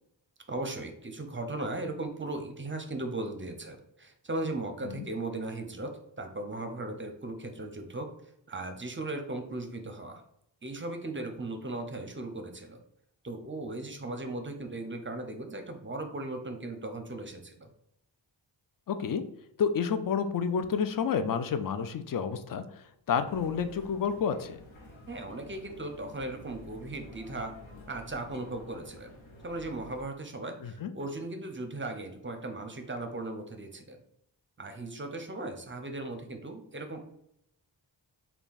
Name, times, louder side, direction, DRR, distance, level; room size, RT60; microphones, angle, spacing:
voice 1, 0.5-8.1 8.5-10.2 10.6-12.8 13.2-17.7 25.1-27.5 27.9-29.1 29.4-34.0 34.6-37.1, right 2 dB, 25° right, 5 dB, 0.6 m, -37 dB
voice 2, 18.9-19.2 19.6-22.6 23.1-24.6 30.6-30.9, left 6 dB, 50° left, 9 dB, 0.4 m, -29 dB
sound 1, 23.3-30.0, left 1 dB, 85° left, 0.8 m, -50 dB
3.4 x 2.3 x 3.9 m, 0.75 s
cardioid pair, 55°, 46 cm